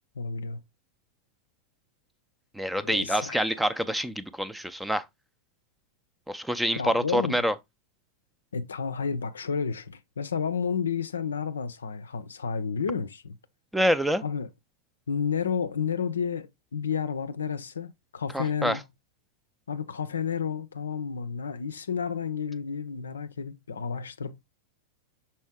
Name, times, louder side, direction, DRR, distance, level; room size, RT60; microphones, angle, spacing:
voice 1, 0.2-0.6 2.8-3.6 6.7-7.5 8.5-13.4 14.2-14.5 15.1-18.8 19.7-24.4, left 6 dB, 70° left, 0.5 m, -31 dB
voice 2, 2.5-5.1 6.3-7.5 13.7-14.2 18.3-18.8, equal, 5° right, 0.6 m, -26 dB
6.2 x 4.3 x 3.5 m
figure-of-eight pair, 90°, 0 cm